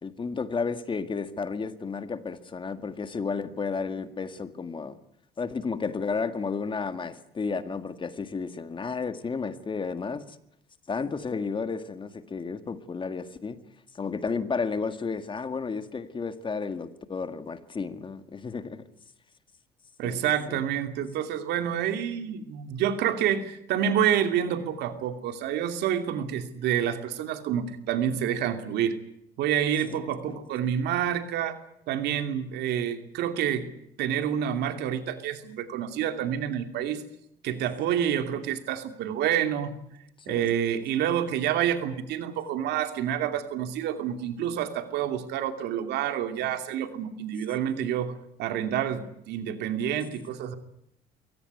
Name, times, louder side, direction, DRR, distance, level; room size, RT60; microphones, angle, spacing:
voice 1, 0.0-5.0 5.4-10.4 10.9-13.6 13.9-18.8 20.0-20.6 29.9-30.0 30.3-30.4 40.3-40.5, left 5 dB, 30° left, 10 dB, 1.9 m, -32 dB
voice 2, 20.0-29.0 29.4-31.6 31.9-33.7 34.0-37.0 37.4-39.7 40.3-48.1 48.4-50.6, right 9 dB, 80° right, 8 dB, 2.8 m, -28 dB
23.5 x 17.5 x 9.6 m, 0.76 s
cardioid pair, 110°, 17 cm